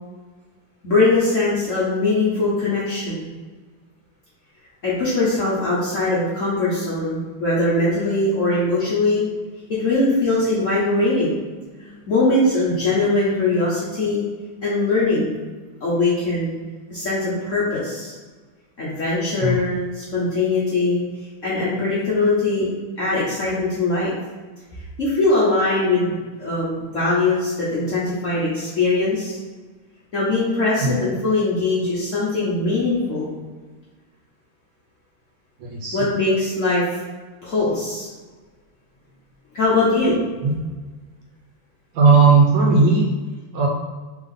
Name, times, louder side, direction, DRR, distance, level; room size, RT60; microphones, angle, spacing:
voice 1, 0.8-3.3 4.8-9.3 9.7-14.2 14.6-15.3 15.8-16.5 16.9-18.1 18.8-21.0 21.4-22.7 23.0-24.1 25.0-26.1 26.4-29.4 30.1-33.3 35.9-37.0 37.4-38.1 39.5-40.2, left 2 dB, 55° left, -8 dB, 0.9 m, -21 dB
voice 2, 35.6-36.0 40.4-40.5 41.9-43.1 43.5-43.7, right 4 dB, 70° right, -1 dB, 1.2 m, -16 dB
3.5 x 3.5 x 3.7 m, 1.3 s
omnidirectional pair, 2.3 m